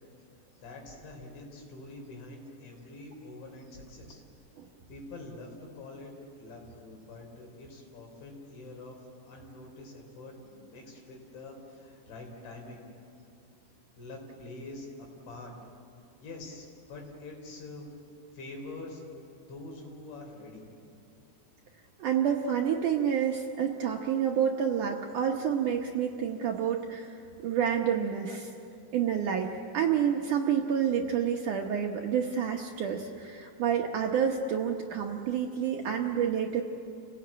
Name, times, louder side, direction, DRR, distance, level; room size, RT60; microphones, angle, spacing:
voice 1, 0.6-4.2 4.9-9.0 9.3-12.8 14.0-15.5 16.2-17.9 18.3-19.0 19.5-20.6, left 2 dB, 80° left, 1 dB, 6.4 m, -45 dB
voice 2, 22.0-28.5 28.9-36.6, right 8 dB, 75° right, 1 dB, 1.8 m, -29 dB
29.5 x 17.5 x 8.7 m, 2.5 s
omnidirectional pair, 5.1 m